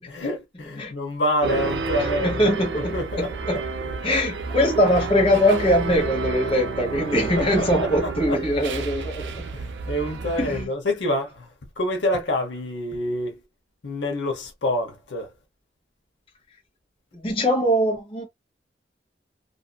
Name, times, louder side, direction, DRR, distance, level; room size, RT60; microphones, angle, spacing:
voice 1, 0.1-3.6 7.4-8.4 9.5-11.5 11.8-13.4 13.8-15.3, left 1 dB, 80° left, 0.8 m, -27 dB
sound 1, 1.4-10.7, right 4 dB, 75° right, 0.5 m, -30 dB
voice 2, 2.0-3.7 4.0-9.3 10.4-10.7 17.1-18.2, equal, 30° left, 1.1 m, -22 dB
2.6 x 2.5 x 2.2 m
head